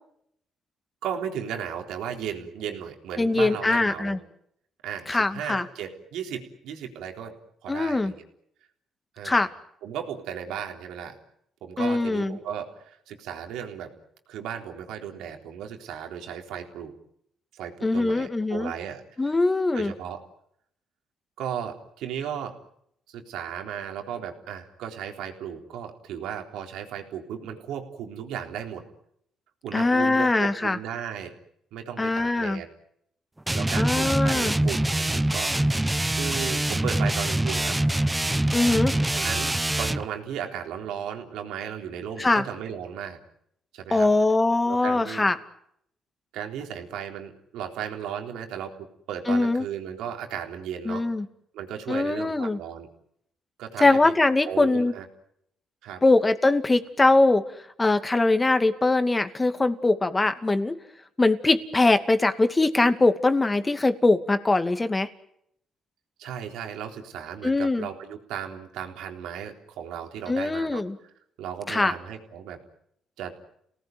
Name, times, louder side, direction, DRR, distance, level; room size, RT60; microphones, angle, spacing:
voice 1, 1.0-4.2 4.8-7.4 7.6-8.2 9.2-9.4 9.8-11.2 11.6-13.9 14.3-16.9 17.5-19.0 19.7-20.2 21.4-22.5 23.1-28.8 29.6-31.3 31.7-32.7 33.5-35.5 36.2-37.8 39.1-43.2 43.7-44.1 44.7-45.3 46.3-48.8 49.1-51.1 51.5-52.9 53.6-54.1 54.4-55.1 55.8-56.0 66.2-71.1 71.4-72.6 73.2-73.3, right 8 dB, 90° right, 4 dB, 3.9 m, -35 dB
voice 2, 3.2-4.2 5.1-5.6 7.7-8.1 9.2-9.5 11.8-12.4 17.8-18.7 19.2-19.9 29.7-30.8 32.0-32.6 33.8-34.6 38.5-38.9 42.2-42.4 43.9-45.4 49.3-49.6 50.9-51.3 51.9-52.6 53.8-54.9 56.0-57.4 57.8-60.8 61.2-65.1 67.4-67.9 70.3-71.0 71.7-71.9, left 2 dB, 20° left, 9 dB, 2.4 m, -22 dB
sound 1, 33.5-40.1, right 1 dB, 10° right, 1.0 m, -24 dB
30.0 x 18.5 x 9.4 m, 0.73 s
cardioid pair, 90°, 0 cm